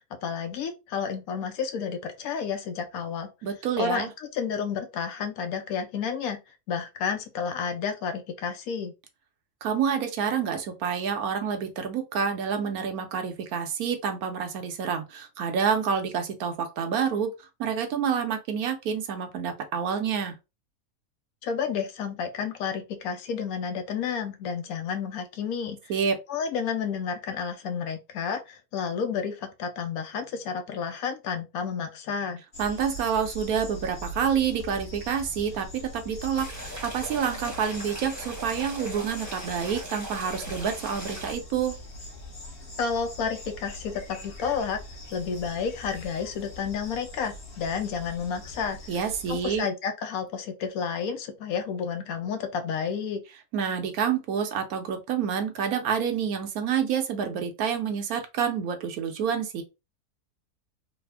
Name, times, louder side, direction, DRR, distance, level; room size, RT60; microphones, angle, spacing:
voice 1, 0.2-3.3 3.8-6.4 6.7-8.9 21.4-25.8 26.3-32.4 42.8-44.8 45.1-48.8 49.3-53.2, left 6 dB, 75° left, 1.0 m, -31 dB
voice 2, 3.4-4.1 9.6-17.3 17.6-20.3 25.9-26.2 32.6-41.7 48.9-49.7 53.5-59.6, right 7 dB, 70° right, 1.1 m, -28 dB
sound 1, 32.5-49.6, equal, 40° left, 1.1 m, -42 dB
sound 2, 36.4-41.3, right 1 dB, 15° right, 0.9 m, -40 dB
3.3 x 2.1 x 3.3 m
omnidirectional pair, 1.6 m